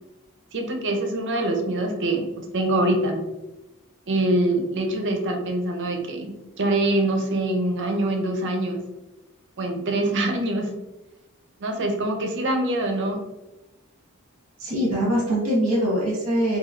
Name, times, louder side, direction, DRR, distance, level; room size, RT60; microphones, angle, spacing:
voice 1, 0.5-2.3 2.5-3.2 4.1-8.8 9.6-10.7 11.6-13.2, right 1 dB, 55° right, 3 dB, 0.5 m, -24 dB
voice 2, 14.6-16.6, equal, 40° right, -4 dB, 1.0 m, -23 dB
3.1 x 2.6 x 2.4 m, 1.0 s
head